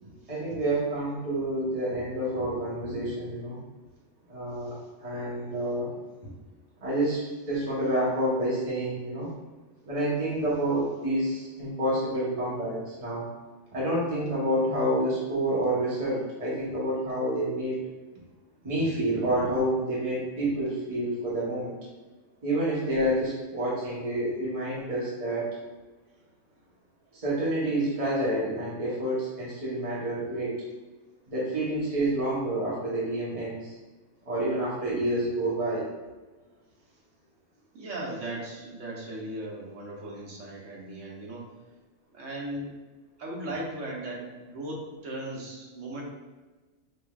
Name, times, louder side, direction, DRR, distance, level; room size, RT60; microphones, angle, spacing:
voice 1, 0.0-3.6 4.3-5.9 6.8-9.3 9.8-13.3 13.7-17.8 18.6-21.7 22.4-25.5 27.1-30.6 31.3-33.7 34.2-35.9, right 1 dB, 30° right, -8 dB, 1.2 m, -28 dB
voice 2, 37.7-41.5 42.1-42.7 43.2-46.0, right 1 dB, 80° right, -2 dB, 1.3 m, -37 dB
4.9 x 3.4 x 2.4 m, 1.2 s
omnidirectional pair, 1.3 m